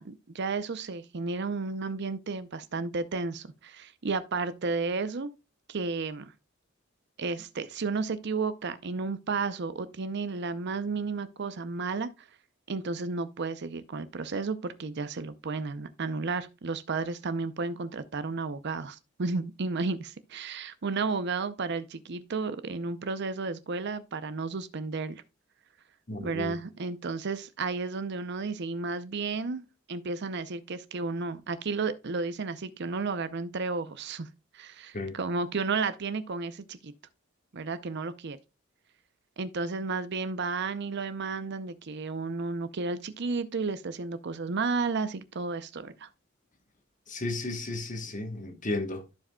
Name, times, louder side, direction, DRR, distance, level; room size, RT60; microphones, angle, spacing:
voice 1, 0.0-5.3 5.7-6.3 7.2-12.1 12.7-25.2 26.2-34.3 34.5-36.9 37.5-38.4 39.4-46.1, right 4 dB, 55° right, 0.6 m, -32 dB
voice 2, 26.1-26.5 34.9-35.2 47.1-49.1, left 2 dB, 40° left, 1.2 m, -34 dB
14.0 x 4.9 x 2.3 m
head